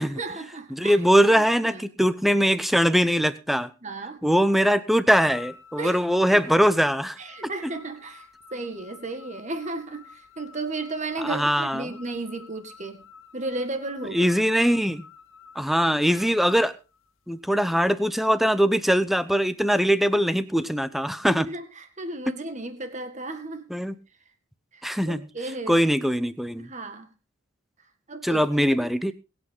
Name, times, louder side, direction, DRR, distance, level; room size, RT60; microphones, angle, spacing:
voice 1, 0.0-1.0 1.3-1.9 3.8-4.2 5.8-6.0 6.3-6.4 7.2-13.0 13.3-14.4 21.3-23.7 24.7-25.8 26.6-27.1 28.1-28.4 28.8-28.9, right 2 dB, 35° right, 8 dB, 1.9 m, -34 dB
voice 2, 0.7-3.7 4.2-7.2 11.2-12.0 14.1-15.0 15.6-16.8 17.3-21.5 22.3-22.4 23.7-24.0 24.8-25.2 25.7-26.7 28.2-29.1, equal, ahead, 14 dB, 0.7 m, -22 dB
sound 1, 5.1-17.4, left 6 dB, 60° left, 2.4 m, -49 dB
22.0 x 8.6 x 3.8 m, 0.31 s
head